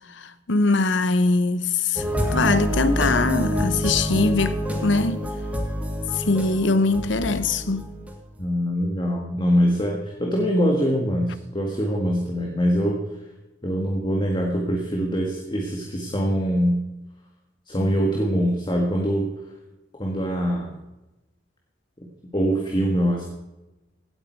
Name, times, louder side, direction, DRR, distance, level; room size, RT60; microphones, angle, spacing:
voice 1, 0.1-2.0 2.3-5.3 6.1-7.9, left 3 dB, 70° left, 0.9 m, -22 dB
sound 1, 2.0-8.4, equal, 10° right, 2.2 m, -27 dB
voice 2, 8.4-13.0 13.6-16.8 17.7-19.2 19.9-20.7 22.3-23.2, equal, 25° left, 1.8 m, -23 dB
17.0 x 8.8 x 4.6 m
head